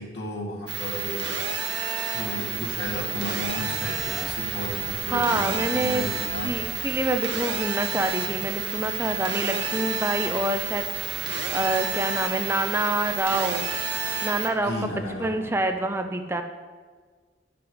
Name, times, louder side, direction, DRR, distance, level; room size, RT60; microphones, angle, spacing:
voice 1, 0.0-1.3 2.1-6.6 14.6-15.5, left 1 dB, 75° left, -3 dB, 2.3 m, -33 dB
sound 1, 0.7-14.5, right 6 dB, 85° right, 1.3 m, -30 dB
sound 2, 2.5-15.7, right 1 dB, 40° right, 2.4 m, -46 dB
voice 2, 5.1-6.1 6.4-10.9 11.2-13.7 14.2-14.9 15.2-16.4, right 2 dB, 15° right, 6 dB, 0.5 m, -26 dB
9.6 x 5.9 x 6.4 m, 1.5 s
head